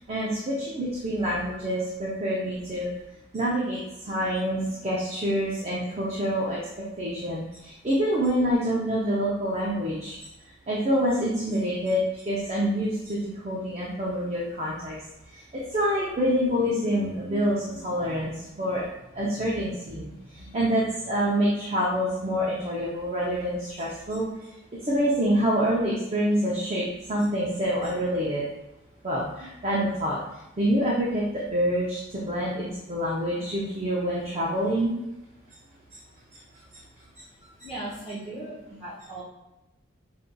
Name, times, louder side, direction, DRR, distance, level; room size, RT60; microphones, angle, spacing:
voice 1, 0.0-2.9 3.3-3.8 4.0-6.6 7.0-10.2 10.7-14.9 15.3-18.9 19.1-24.3 24.8-28.4 29.0-30.2 30.6-34.9, equal, 30° right, -5 dB, 0.5 m, -26 dB
voice 2, 37.6-39.2, right 2 dB, 5° left, -13 dB, 1.0 m, -37 dB
5.2 x 2.5 x 2.2 m, 0.92 s
head